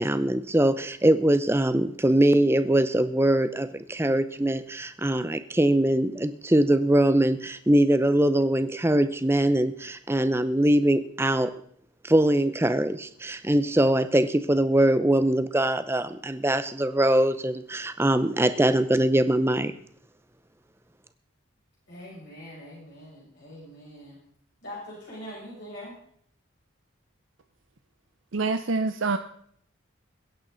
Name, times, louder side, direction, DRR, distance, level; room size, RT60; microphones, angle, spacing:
voice 1, 0.0-11.5 12.0-19.7, right 1 dB, 10° right, 12 dB, 0.6 m, -22 dB
voice 2, 21.9-24.2 24.6-26.0, equal, 55° left, -7 dB, 7.1 m, -42 dB
voice 3, 28.3-29.2, right 3 dB, 70° right, 8 dB, 0.7 m, -25 dB
22.0 x 10.5 x 4.0 m, 0.64 s
head